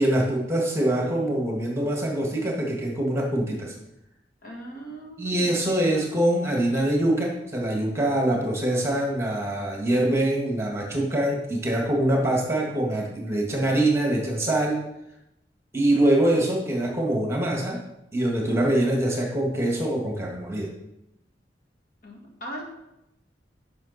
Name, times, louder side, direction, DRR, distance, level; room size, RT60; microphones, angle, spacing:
voice 1, 0.0-3.7 5.2-14.8 15.7-17.8 18.1-20.7, right 1 dB, 15° right, -1 dB, 1.6 m, -24 dB
voice 2, 4.4-5.8 22.0-22.6, right 1 dB, 50° left, -1 dB, 2.1 m, -39 dB
11.0 x 5.7 x 4.1 m, 0.87 s
head